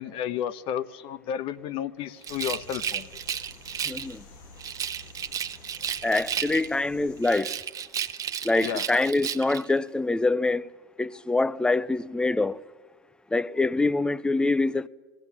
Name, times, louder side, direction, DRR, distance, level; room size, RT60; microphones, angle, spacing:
voice 1, 0.0-3.1 8.6-8.9, left 9 dB, 55° left, 1.0 m, -32 dB
Rattle, 2.2-4.1 4.6-6.9 7.2-9.7, right 8 dB, 30° right, 1.0 m, -33 dB
sound 1, 2.3-7.4, left 4 dB, 75° left, 1.7 m, -50 dB
voice 2, 3.9-4.2 6.0-7.5 8.4-10.7 11.0-12.6 13.3-14.9, left 2 dB, 10° left, 0.6 m, -25 dB
19.0 x 16.0 x 9.8 m
supercardioid pair, 110°, 11 cm